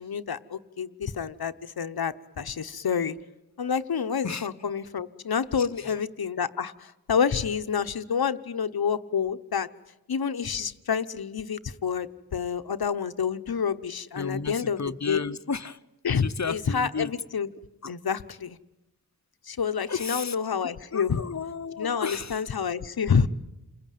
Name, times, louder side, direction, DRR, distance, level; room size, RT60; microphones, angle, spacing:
voice 1, 0.0-3.2 3.6-9.7 10.1-14.8 15.1-15.2 16.0-17.5 17.9-18.6 19.5-21.2 21.8-23.3, left 6 dB, 70° left, 1.0 m, -28 dB
voice 2, 5.6-5.9 14.1-15.8 16.2-17.1 17.8-17.9 19.9-20.4 20.9-22.4, left 5 dB, 45° left, 1.0 m, -33 dB
29.0 x 21.0 x 9.3 m
wide cardioid pair, 75°, 38 cm